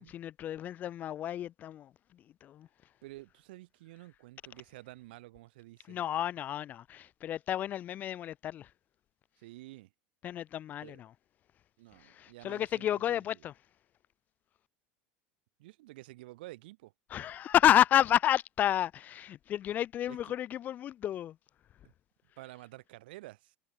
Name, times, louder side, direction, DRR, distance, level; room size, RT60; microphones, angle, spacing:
voice 1, 0.1-2.7 5.9-8.7 10.2-11.1 12.0-13.5 17.1-21.4, left 11 dB, 35° left, 0.5 m, -30 dB
voice 2, 3.0-6.0 9.4-9.9 10.8-11.0 11.8-13.2 15.6-16.9 20.1-20.3 21.8-21.9 22.4-23.6, right 19 dB, 85° right, 4.2 m, -50 dB
supercardioid pair, 140°, 5 cm